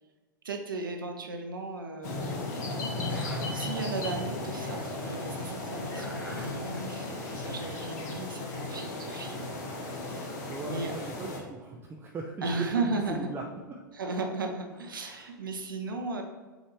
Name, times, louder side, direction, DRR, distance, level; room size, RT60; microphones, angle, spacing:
voice 1, 0.4-2.5 3.5-7.1 7.3-9.4 10.0-10.3 10.7-10.9 12.4-13.3 13.9-16.2, right 3 dB, 75° right, 3 dB, 1.0 m, -35 dB
sound 1, 2.0-11.4, left 2 dB, 50° left, 1.2 m, -35 dB
sound 2, 2.9-4.0 5.5-7.8 8.1-8.2 9.0-9.9 12.3-13.3 14.7-15.3, left 1 dB, 90° left, 1.7 m, -47 dB
voice 2, 10.5-13.4 13.7-13.8 15.0-15.1, right 4 dB, 20° right, -1 dB, 0.6 m, -39 dB
8.1 x 2.8 x 4.5 m, 1.3 s
figure-of-eight pair, 95°, 11 cm